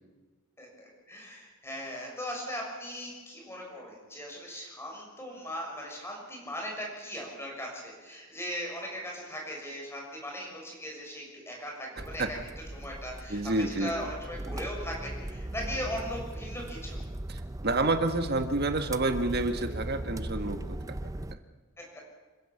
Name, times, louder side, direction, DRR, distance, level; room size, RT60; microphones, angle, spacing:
voice 1, 0.6-12.2 12.7-17.0 21.8-22.0, equal, 10° left, -1 dB, 6.5 m, -39 dB
sound 1, 12.0-21.4, right 1 dB, 15° right, 0.6 m, -38 dB
voice 2, 13.3-13.9 17.3-21.4, right 2 dB, 50° right, 8 dB, 1.7 m, -29 dB
27.0 x 15.5 x 7.1 m, 1.3 s
head